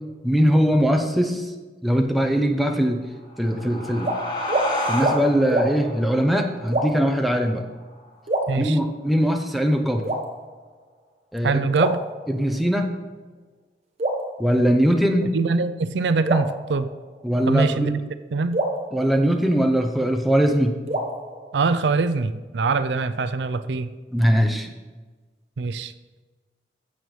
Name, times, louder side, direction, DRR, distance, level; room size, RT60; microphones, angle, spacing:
voice 1, 0.2-1.5 1.8-3.0 3.4-4.1 4.9-7.6 8.6-10.1 11.3-11.6 12.3-12.9 14.4-15.3 17.2-17.9 18.9-20.8 24.1-24.7, equal, ahead, 3 dB, 0.7 m, -21 dB
sound 1, 3.2-8.3, left 1 dB, 25° left, 1.4 m, -32 dB
sound 2, 4.0-4.2 4.5-4.7 5.0-5.2 5.5-5.7 6.7-7.1 8.3-9.1 10.0-10.8 11.8-12.7 14.0-15.1 16.2-17.4 18.5-20.0 20.9-22.1, right 1 dB, 35° right, 1.2 m, -28 dB
voice 2, 8.5-8.8 11.4-12.0 15.3-16.9 17.5-18.0 18.3-18.6 21.5-23.9 25.6-25.9, right 4 dB, 75° right, 12 dB, 0.5 m, -23 dB
15.0 x 6.9 x 3.2 m, 1.3 s
head